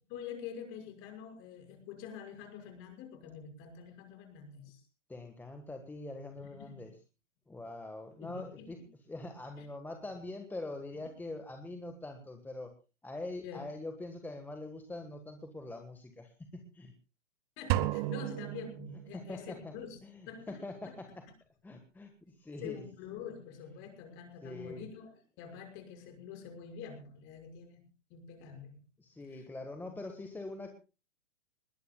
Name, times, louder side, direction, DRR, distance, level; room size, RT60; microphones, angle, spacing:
voice 1, 0.1-4.9 6.3-6.9 8.2-8.7 9.6-9.7 13.4-13.7 17.6-20.0 20.3-21.0 22.5-28.8 29.3-29.5 29.9-30.0, left 7 dB, 35° left, 4 dB, 5.8 m, -47 dB
voice 2, 5.1-6.9 7.5-8.8 9.1-12.7 13.0-16.9 19.1-19.7 20.0-21.1 21.6-22.8 24.4-24.8 29.0-30.7, left 2 dB, 5° left, 5 dB, 1.4 m, -43 dB
sound 1, 17.7-19.5, right 15 dB, 30° right, 1.0 m, -33 dB
21.5 x 20.5 x 2.3 m, 0.33 s
hypercardioid pair, 120°, 36 cm